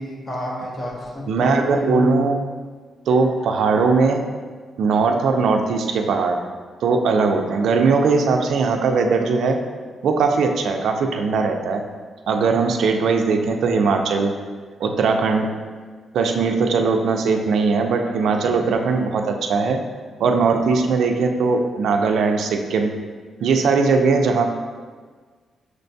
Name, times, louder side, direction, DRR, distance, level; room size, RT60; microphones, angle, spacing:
voice 1, 0.0-2.3, left 2 dB, 25° left, -3 dB, 0.6 m, -29 dB
voice 2, 1.3-2.4 3.1-4.2 4.8-6.4 6.8-9.6 10.0-11.8 12.3-14.3 14.8-15.5 16.1-19.8 20.2-22.9 23.4-24.5, right 4 dB, 70° right, 4 dB, 0.3 m, -19 dB
6.2 x 2.2 x 2.6 m, 1.5 s
wide cardioid pair, 175°, 0 cm